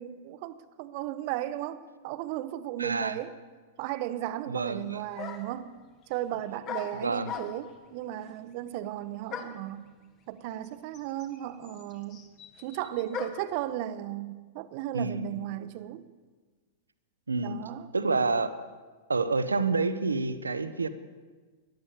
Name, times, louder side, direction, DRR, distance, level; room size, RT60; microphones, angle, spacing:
voice 1, 0.0-3.4 3.8-5.8 6.1-9.8 10.3-12.3 12.6-16.0 17.4-17.9, right 13 dB, 45° right, 0.8 m, -35 dB
voice 2, 2.8-3.2 4.5-5.0 7.0-7.3 14.9-15.3 17.3-17.6 17.9-18.7 19.1-20.9, right 3 dB, 80° right, 0.9 m, -28 dB
sound 1, 4.7-4.8 5.2-5.6 6.6-7.8 9.3-9.7 10.6-10.7 10.9-13.6, left 6 dB, 35° left, 1.6 m, -39 dB
15.5 x 11.0 x 6.9 m
figure-of-eight pair, 100°, 0 cm